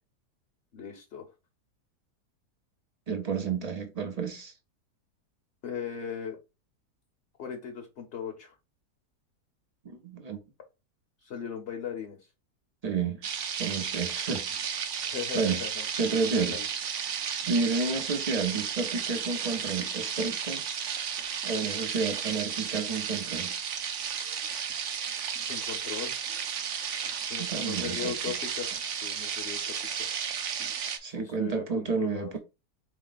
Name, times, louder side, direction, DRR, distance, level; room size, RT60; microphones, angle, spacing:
voice 1, 0.7-1.3 5.6-6.4 7.4-8.5 11.2-12.2 15.0-15.9 16.3-16.7 25.5-26.1 27.2-28.7 29.0-30.1 31.1-32.3, left 7 dB, 50° left, 1.0 m, -38 dB
voice 2, 3.1-4.5 9.8-10.4 12.8-13.2 13.6-14.5 15.3-15.6 16.0-16.6 17.5-20.6 21.5-23.5 27.4-28.3 31.0-32.4, right 4 dB, 40° right, 0.6 m, -30 dB
sound 1, 13.2-31.0, right 7 dB, 60° right, 0.9 m, -33 dB
4.2 x 3.1 x 4.0 m
omnidirectional pair, 1.7 m